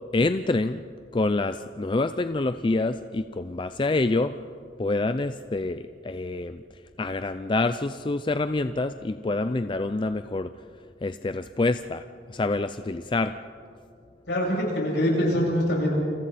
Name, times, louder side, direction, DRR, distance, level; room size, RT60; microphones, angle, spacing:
voice 1, 0.1-0.8 1.1-4.3 4.8-6.6 7.0-10.5 11.0-12.0 12.3-13.3, left 2 dB, 25° left, 10 dB, 0.4 m, -26 dB
voice 2, 14.3-16.0, equal, 75° left, -3 dB, 7.9 m, -24 dB
29.5 x 27.5 x 4.2 m, 2.4 s
head